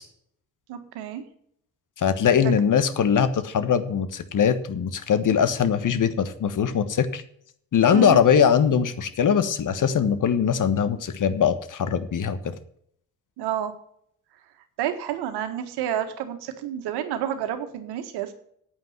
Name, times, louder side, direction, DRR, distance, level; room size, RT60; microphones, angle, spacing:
voice 1, 0.7-1.2 2.4-2.5 7.9-8.2 13.4-13.7 14.8-18.3, right 10 dB, 70° right, 7 dB, 1.7 m, -29 dB
voice 2, 2.0-7.2 7.7-12.5, left 7 dB, 50° left, 12 dB, 1.4 m, -21 dB
9.3 x 8.8 x 6.8 m, 0.67 s
hypercardioid pair, 50°, 41 cm